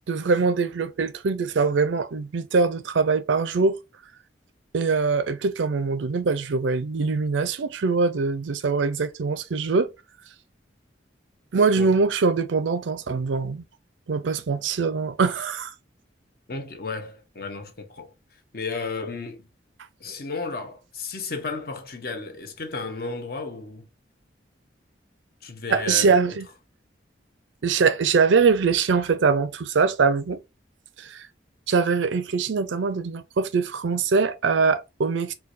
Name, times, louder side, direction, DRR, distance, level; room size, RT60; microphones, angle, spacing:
voice 1, 0.1-3.8 4.7-9.9 11.5-13.6 14.1-15.7 25.7-26.5 27.6-30.4 31.0-31.3 31.7-35.3, right 4 dB, 85° right, 0.5 m, -23 dB
voice 2, 16.5-19.5 20.0-23.9 25.4-26.4, left 4 dB, 55° left, 0.8 m, -34 dB
4.5 x 2.2 x 2.5 m
head